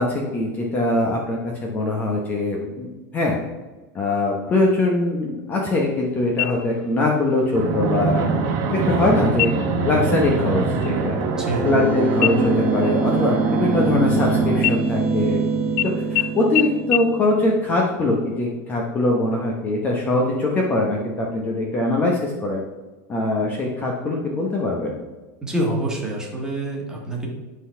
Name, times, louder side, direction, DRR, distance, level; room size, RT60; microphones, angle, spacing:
voice 1, 0.0-3.4 3.9-8.4 8.7-9.5 9.8-11.2 11.6-15.4 16.1-22.6 23.1-24.9, left 2 dB, 20° left, -1 dB, 0.9 m, -22 dB
sound 1, 6.4-7.0 7.4-7.5 8.1-8.6 9.3-9.8 10.2-10.5 10.8-11.9 12.2-14.2 14.6-15.4 15.8-15.9 16.2-16.3 16.6-16.7 16.9-17.0, left 17 dB, 50° left, 0.5 m, -26 dB
Fixed-wing aircraft airplane, 7.5-14.6, right 4 dB, 45° right, 1.4 m, -24 dB
voice 2, 11.4-11.7 25.4-27.3, right 1 dB, 5° right, -2 dB, 1.7 m, -26 dB
sound 2, 11.6-18.3, right 4 dB, 20° right, 0.8 m, -24 dB
11.0 x 4.0 x 5.6 m, 1.2 s
supercardioid pair, 170°, 9 cm